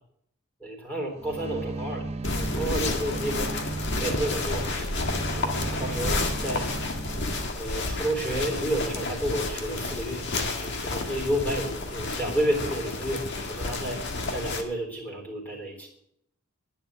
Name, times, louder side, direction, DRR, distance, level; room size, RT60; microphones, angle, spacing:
voice 1, 0.6-3.5 4.0-6.7 7.5-10.2 10.6-13.2 13.5-14.0 14.3-15.9, right 1 dB, 5° left, 0 dB, 3.7 m, -31 dB
sound 1, 1.2-7.5, right 2 dB, 30° right, 0.6 m, -36 dB
sound 2, 2.2-14.6, left 2 dB, 50° left, 1.7 m, -30 dB
11.0 x 10.5 x 7.8 m, 0.74 s
head